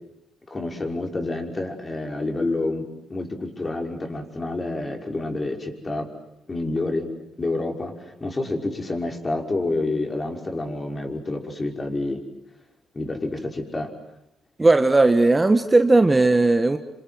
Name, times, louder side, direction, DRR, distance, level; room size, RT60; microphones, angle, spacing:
voice 1, 0.5-6.1 6.5-7.1 7.4-12.2 12.9-13.9, left 2 dB, 25° left, 3 dB, 5.8 m, -28 dB
voice 2, 14.6-16.8, right 2 dB, 20° right, 7 dB, 1.5 m, -17 dB
28.0 x 26.5 x 7.9 m, 0.85 s
cardioid pair, 90°, 0 cm